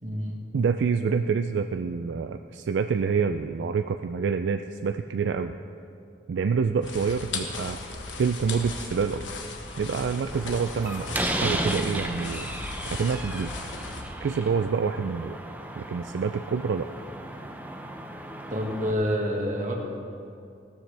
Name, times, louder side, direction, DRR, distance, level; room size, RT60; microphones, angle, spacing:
voice 1, 0.0-0.4 18.5-19.8, equal, 45° right, 0 dB, 1.7 m, -27 dB
voice 2, 0.5-5.6 6.3-7.8 8.2-9.3 9.8-11.1 11.3-12.5 12.9-13.5 14.2-15.4 15.8-16.9, right 5 dB, 75° right, 8 dB, 0.3 m, -27 dB
sound 1, 6.8-14.0, left 3 dB, 90° left, 1.3 m, -37 dB
Slam, 10.3-18.9, right 1 dB, 10° right, 0.6 m, -34 dB
16.0 x 12.5 x 3.4 m, 2.5 s
head